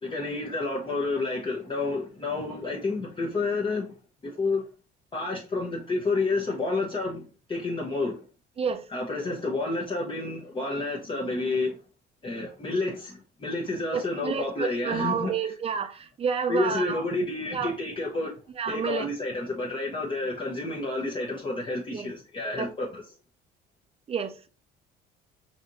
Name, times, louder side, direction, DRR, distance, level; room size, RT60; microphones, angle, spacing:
voice 1, 0.0-3.9 4.2-4.6 5.1-7.2 7.5-8.2 8.9-11.8 12.2-15.5 16.5-18.4 18.7-23.0, left 3 dB, 25° left, 0.8 m, -30 dB
voice 2, 13.9-17.0 17.5-17.7 18.6-19.1 21.9-22.1 22.6-22.7 24.1-24.5, right 6 dB, 30° right, 0.5 m, -29 dB
5.0 x 2.9 x 2.6 m
cardioid pair, 110°, 19 cm